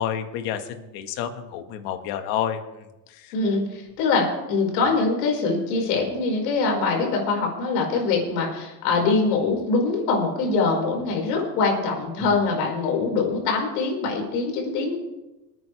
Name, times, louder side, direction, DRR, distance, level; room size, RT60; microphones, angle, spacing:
voice 1, 0.0-2.6 3.1-3.3, left 9 dB, 50° left, 7 dB, 1.5 m, -29 dB
voice 2, 3.3-14.9, left 4 dB, 80° left, 0 dB, 5.3 m, -23 dB
27.0 x 9.5 x 3.4 m, 1.0 s
cardioid pair, 170°, 49 cm